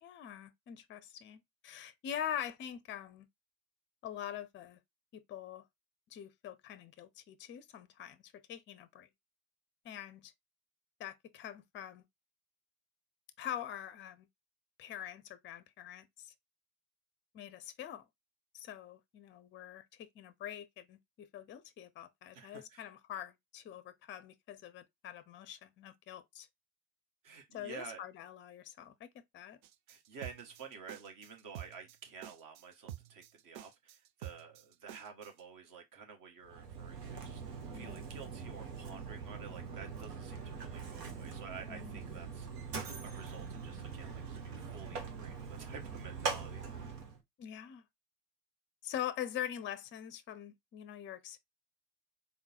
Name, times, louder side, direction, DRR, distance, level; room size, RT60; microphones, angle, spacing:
voice 1, 0.0-3.3 4.0-4.8 5.1-5.7 6.1-9.1 9.8-10.3 11.0-12.0 13.4-14.3 14.8-16.3 17.3-18.1 18.5-26.5 27.5-29.6 37.7-38.0 41.7-42.2 47.4-47.9 48.8-51.4, left 10 dB, 25° left, 0.5 m, -44 dB
voice 2, 22.3-22.9 27.2-28.0 29.9-42.5 43.0-46.9, right 6 dB, 40° right, 1.3 m, -51 dB
sound 1, 29.6-35.4, right 12 dB, 55° right, 0.6 m, -49 dB
Mechanisms, 36.4-47.2, right 5 dB, 75° right, 1.1 m, -42 dB
3.7 x 2.2 x 4.2 m
figure-of-eight pair, 65°, 48 cm